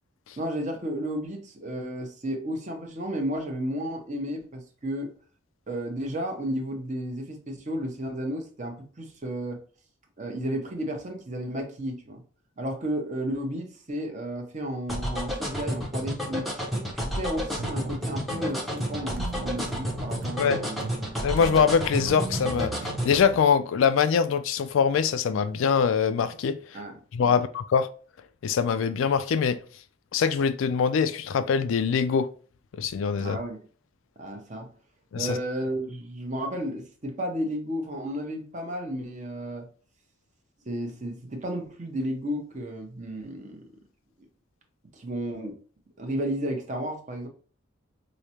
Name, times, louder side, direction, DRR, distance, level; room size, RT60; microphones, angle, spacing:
voice 1, 0.4-5.1 5.7-9.6 10.2-12.2 12.6-20.8 26.7-27.4 33.2-33.6 34.2-34.7 35.2-39.7 40.7-43.6 44.9-45.6 46.0-47.3, equal, 35° right, 0.7 m, -33 dB
sound 1, 14.9-23.2, equal, ahead, 0.6 m, -30 dB
sound 2, 17.6-23.4, right 5 dB, 65° right, 0.4 m, -40 dB
voice 2, 21.2-26.6 27.1-27.9 28.4-29.6 30.1-32.3 32.8-33.4 35.1-35.4, left 6 dB, 70° left, 0.3 m, -23 dB
4.9 x 2.1 x 2.8 m
head